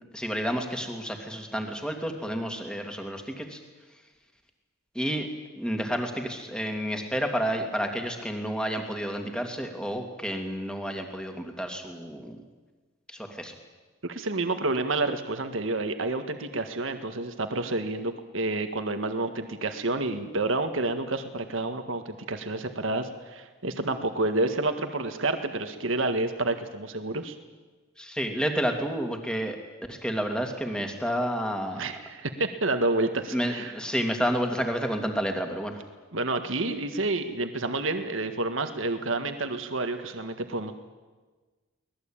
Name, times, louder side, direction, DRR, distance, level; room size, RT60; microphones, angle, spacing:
voice 1, 0.1-3.6 4.9-5.3 5.6-12.4 13.1-13.5 28.0-29.6 29.9-31.9 33.3-35.8, equal, 5° left, 4 dB, 2.5 m, -30 dB
voice 2, 14.0-27.3 31.8-33.7 36.1-40.7, right 2 dB, 65° right, 7 dB, 1.7 m, -29 dB
24.0 x 19.5 x 8.9 m, 1.3 s
head